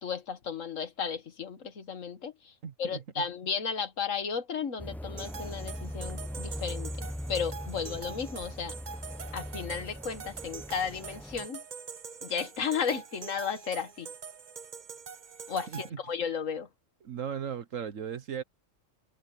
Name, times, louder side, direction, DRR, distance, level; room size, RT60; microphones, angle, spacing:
voice 1, 0.0-8.8 9.3-11.6 12.2-14.1 15.5-16.7, left 6 dB, 75° left, 1.8 m, -34 dB
voice 2, 2.6-3.0 15.7-15.8 17.0-18.4, right 8 dB, 80° right, 1.5 m, -36 dB
sound 1, 4.8-11.5, equal, ahead, 0.4 m, -40 dB
sound 2, 5.2-15.9, right 6 dB, 40° right, 0.9 m, -44 dB
omnidirectional pair, 1.3 m